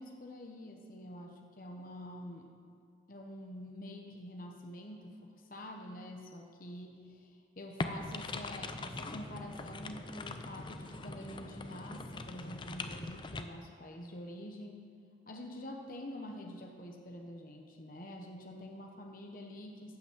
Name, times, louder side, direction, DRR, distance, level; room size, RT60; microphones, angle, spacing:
voice 1, 0.0-2.5 3.1-14.9 15.3-20.0, left 1 dB, 45° left, 2 dB, 1.0 m, -47 dB
sound 1, 7.8-13.4, left 2 dB, 25° left, 0.4 m, -42 dB
12.5 x 6.0 x 7.9 m, 2.2 s
head